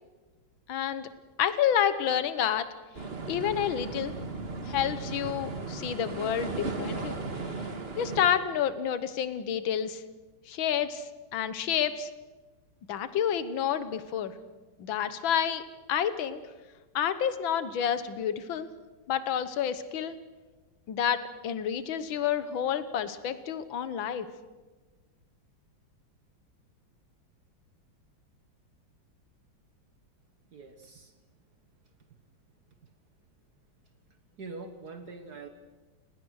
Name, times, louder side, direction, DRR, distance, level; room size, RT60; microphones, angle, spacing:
voice 1, 0.7-1.1 1.4-2.7 3.3-4.2 4.7-7.2 8.0-10.0 10.5-12.1 12.9-14.3 14.8-15.6 15.9-16.4 17.0-18.7 19.1-20.2 20.9-24.3, left 9 dB, 75° left, 12 dB, 1.9 m, -29 dB
sound 1, 2.9-8.3, right 3 dB, 30° right, 1.9 m, -36 dB
voice 2, 30.5-31.0 34.4-35.5, right 3 dB, 55° right, 7 dB, 1.8 m, -43 dB
30.0 x 19.5 x 6.5 m, 1.3 s
omnidirectional pair, 2.2 m